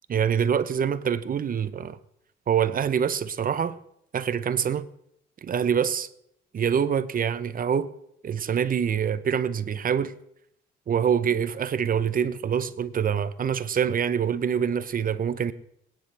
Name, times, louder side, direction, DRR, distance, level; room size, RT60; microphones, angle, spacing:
voice 1, 0.1-2.0 2.5-3.8 4.1-4.9 5.4-6.1 6.5-7.9 8.2-10.2 10.9-15.5, right 8 dB, 45° right, 0.8 m, -25 dB
22.5 x 9.9 x 3.4 m
cardioid pair, 90°, 20 cm